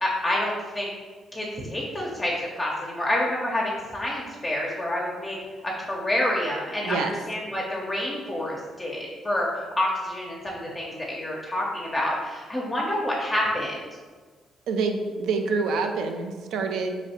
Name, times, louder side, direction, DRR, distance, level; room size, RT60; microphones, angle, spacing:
voice 1, 0.0-0.9 1.3-5.4 5.6-13.8, left 1 dB, 20° left, -3 dB, 0.6 m, -28 dB
voice 2, 6.8-7.1 14.7-17.0, right 4 dB, 80° right, 5 dB, 0.4 m, -26 dB
3.1 x 2.5 x 4.2 m, 1.4 s
cardioid pair, 90°, 0 cm